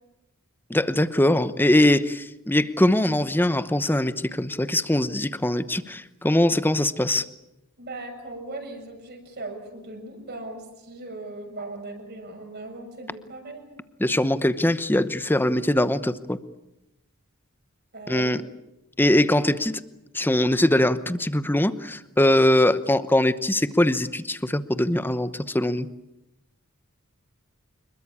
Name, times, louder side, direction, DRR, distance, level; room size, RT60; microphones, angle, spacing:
voice 1, 0.7-7.3 14.0-16.4 18.1-18.4 19.0-19.8 20.1-25.9, left 1 dB, 10° left, 13 dB, 0.9 m, -22 dB
voice 2, 7.8-13.7 17.9-18.5, right 2 dB, 50° right, 3 dB, 6.9 m, -38 dB
26.0 x 22.0 x 8.7 m, 0.92 s
head